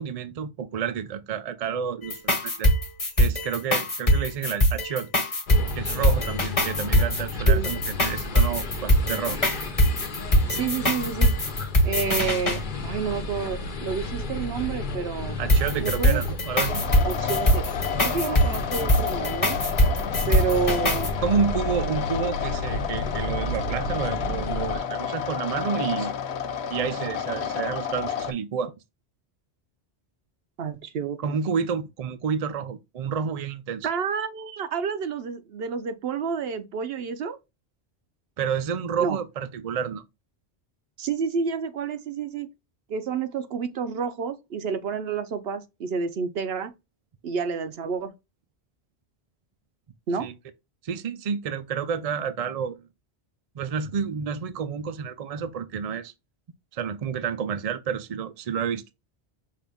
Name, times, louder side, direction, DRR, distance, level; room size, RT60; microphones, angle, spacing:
voice 1, 0.0-2.7 3.2-5.1 5.7-9.4 15.4-16.8 21.2-26.1 26.7-28.7 31.2-33.9 38.4-40.0 50.2-50.3 50.8-52.8 53.5-56.1 56.7-58.8, right 7 dB, 50° right, 0.5 m, -29 dB
sound 1, 2.0-12.6 15.5-21.1, equal, 35° left, 1.2 m, -22 dB
sound 2, 5.5-24.8, left 2 dB, 50° left, 0.9 m, -32 dB
voice 2, 10.5-11.3 11.8-15.4 15.8-16.2 17.0-17.7 18.0-19.6 20.3-21.1 30.6-31.4 33.8-37.4 39.0-39.2 41.0-42.5 42.9-46.7 47.2-48.1 50.1-50.3, right 6 dB, 65° right, 0.8 m, -29 dB
sound 3, 16.7-28.3, left 8 dB, 75° left, 0.9 m, -31 dB
5.5 x 2.5 x 3.4 m
omnidirectional pair, 1.1 m